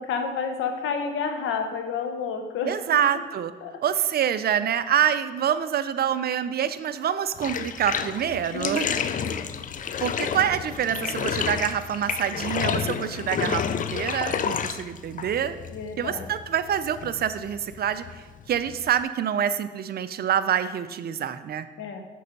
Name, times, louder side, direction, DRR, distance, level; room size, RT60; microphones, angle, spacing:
voice 1, 0.0-3.0 3.6-3.7 8.5-9.4 15.7-16.3 21.8-22.1, left 5 dB, 80° left, 5 dB, 1.0 m, -30 dB
voice 2, 2.7-3.5 3.8-8.9 10.0-15.6 16.0-21.7, right 9 dB, 50° right, 13 dB, 0.5 m, -26 dB
Bathtub (filling or washing), 7.4-19.0, left 7 dB, 40° left, 0.4 m, -30 dB
6.7 x 5.4 x 5.3 m, 1.3 s
cardioid pair, 90°, 20 cm